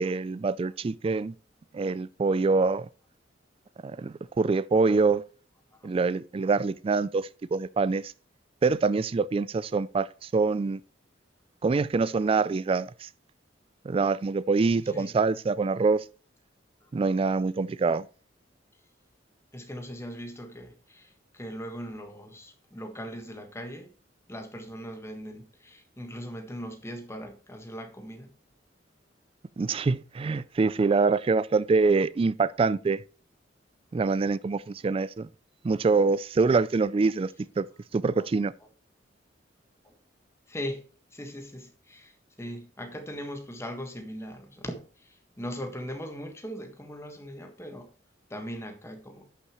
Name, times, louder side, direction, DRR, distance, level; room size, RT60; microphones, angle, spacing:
voice 1, 0.0-1.3 1.7-2.9 3.8-5.2 5.8-8.1 8.6-10.8 11.6-13.1 13.8-16.0 16.9-18.1 29.6-33.0 33.9-35.3 35.6-37.7 37.9-38.5, right 4 dB, 30° right, 0.3 m, -25 dB
voice 2, 5.7-6.0 14.9-15.1 16.8-16.9 19.5-23.9 24.3-28.3 38.2-38.3 39.8-39.9 40.5-40.8 41.1-47.9 48.3-49.3, equal, 15° left, 1.6 m, -40 dB
11.0 x 6.9 x 3.1 m
head